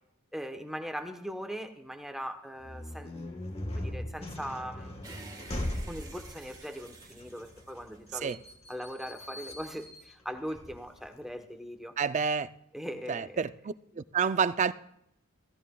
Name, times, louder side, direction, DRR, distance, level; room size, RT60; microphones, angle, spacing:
voice 1, 0.3-3.5 3.7-5.2 5.9-8.4 8.7-12.0 12.7-13.4, equal, ahead, 6 dB, 1.0 m, -40 dB
sound 1, 2.6-11.3, left 1 dB, 30° left, 1.4 m, -40 dB
sound 2, 5.0-8.5, right 3 dB, 20° right, 1.4 m, -50 dB
voice 2, 12.0-12.5 13.1-14.7, right 6 dB, 35° right, 14 dB, 0.4 m, -29 dB
16.0 x 14.0 x 2.3 m, 0.77 s
head